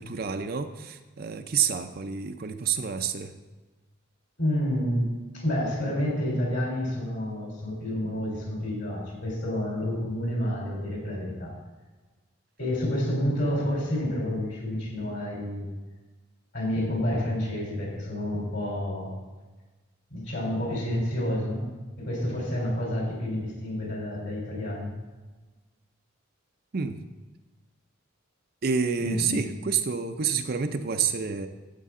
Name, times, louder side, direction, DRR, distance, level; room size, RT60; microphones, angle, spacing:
voice 1, 0.0-3.3 26.7-27.0 28.6-31.5, right 6 dB, 45° right, 7 dB, 0.5 m, -28 dB
voice 2, 4.4-11.5 12.6-15.7 16.5-19.1 20.1-21.7 22.0-24.9 29.0-29.5, left 1 dB, 60° left, -2 dB, 3.7 m, -29 dB
12.5 x 8.2 x 3.7 m, 1.2 s
head